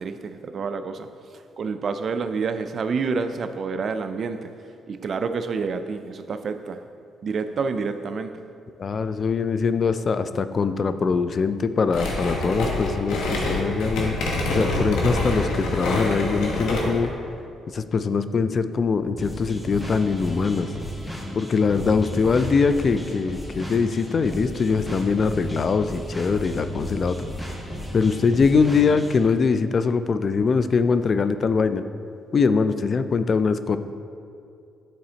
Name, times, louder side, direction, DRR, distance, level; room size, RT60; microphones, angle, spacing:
voice 1, 0.0-4.6 4.9-6.9 7.2-8.4, right 5 dB, 50° right, 9 dB, 0.4 m, -28 dB
voice 2, 8.8-17.1 17.7-20.7 21.4-27.2 27.9-31.8 32.3-33.8, left 5 dB, 45° left, 11 dB, 0.3 m, -22 dB
sound 1, 11.9-17.1, left 1 dB, 85° left, 1.1 m, -26 dB
sound 2, 19.2-29.3, equal, 10° left, 1.2 m, -34 dB
10.5 x 4.2 x 2.8 m, 2.5 s
cardioid pair, 90°, 0 cm